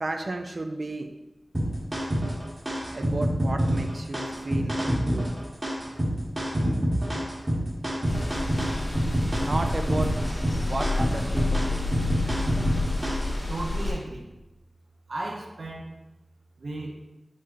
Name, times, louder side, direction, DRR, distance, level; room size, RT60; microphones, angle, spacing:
voice 1, 0.0-1.2 2.9-5.3 9.4-10.4 10.7-11.9, right 2 dB, 50° right, 5 dB, 0.4 m, -33 dB
sound 1, 1.5-13.3, equal, 25° right, 1.0 m, -27 dB
sound 2, 8.0-13.9, left 2 dB, 35° left, 1.2 m, -29 dB
voice 2, 13.5-14.3 15.1-15.9 16.6-17.0, right 2 dB, 75° right, 0 dB, 0.7 m, -35 dB
5.4 x 3.6 x 2.6 m, 0.99 s
wide cardioid pair, 65°, 0 cm